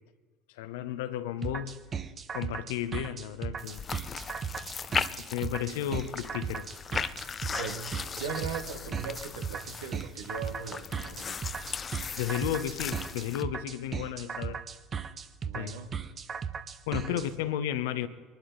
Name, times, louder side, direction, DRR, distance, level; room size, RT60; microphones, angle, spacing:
voice 1, 0.5-1.8 2.3-3.9 5.0-6.7 12.2-14.6 15.5-15.7 16.9-18.1, left 11 dB, 80° left, 0.8 m, -33 dB
sound 1, 1.4-17.3, right 6 dB, 40° right, 0.8 m, -36 dB
sound 2, 3.6-13.4, left 6 dB, 35° left, 0.5 m, -38 dB
voice 2, 7.5-11.5 15.4-16.0 17.1-17.2, right 5 dB, 85° right, 1.3 m, -39 dB
23.0 x 11.5 x 3.9 m
hypercardioid pair, 75°, 0 cm